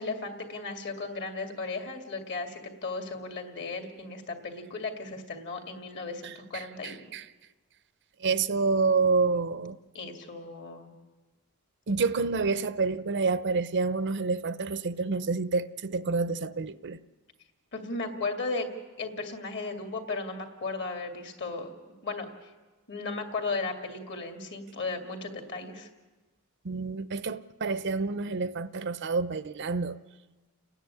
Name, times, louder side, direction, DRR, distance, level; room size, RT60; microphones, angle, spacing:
voice 1, 0.0-7.1 9.9-10.9 17.7-18.7 19.0-21.7 22.0-22.5 22.9-25.9, left 3 dB, 55° left, 2.5 m, -35 dB
voice 2, 6.2-7.3 8.2-9.8 11.9-17.0 26.6-30.0, right 4 dB, 55° right, 0.7 m, -28 dB
29.5 x 10.0 x 9.8 m
head